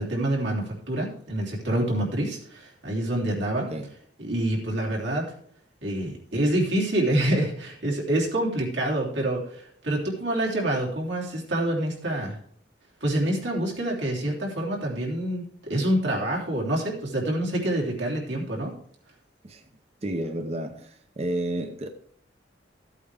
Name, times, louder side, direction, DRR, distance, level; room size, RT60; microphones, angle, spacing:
voice 1, 0.0-3.7 4.2-5.3 5.8-12.4 13.0-18.7, right 1 dB, 75° right, 3.3 m, -27 dB
voice 2, 20.0-21.9, right 1 dB, 35° right, 0.7 m, -31 dB
14.5 x 8.4 x 3.5 m
head